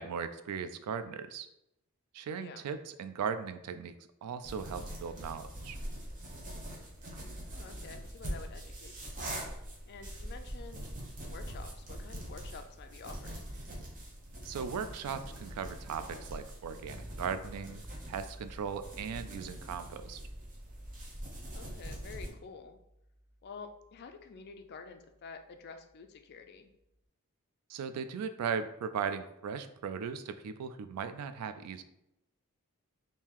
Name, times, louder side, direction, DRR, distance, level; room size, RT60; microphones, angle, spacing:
voice 1, 0.0-1.5 2.1-3.9 4.2-5.8 14.4-17.8 18.1-20.2 27.7-31.8, right 6 dB, 90° right, 10 dB, 0.3 m, -38 dB
voice 2, 2.3-2.7 7.3-9.4 9.9-10.9 11.2-13.5 21.4-22.8 23.4-26.7, left 5 dB, 45° left, 7 dB, 0.3 m, -49 dB
sound 1, 4.4-22.3, right 1 dB, 35° right, 0.7 m, -43 dB
sound 2, 16.8-26.7, equal, 10° right, 1.1 m, -54 dB
3.6 x 2.7 x 2.9 m, 0.84 s
head